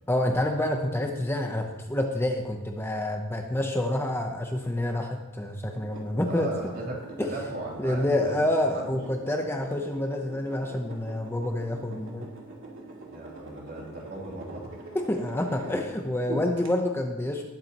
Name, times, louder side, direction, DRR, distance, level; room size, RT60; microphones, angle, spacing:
voice 1, 0.1-6.5 7.2-7.3 7.8-12.3 14.9-17.4, left 1 dB, 10° left, 2 dB, 0.8 m, -28 dB
sound 1, 5.7-16.2 16.6-16.7, right 2 dB, 65° right, 2.2 m, -45 dB
voice 2, 6.2-7.0 7.3-8.4 8.7-9.0 13.0-14.7 16.3-16.4, right 2 dB, 45° right, -3 dB, 3.2 m, -36 dB
19.0 x 8.2 x 3.0 m, 1.1 s
head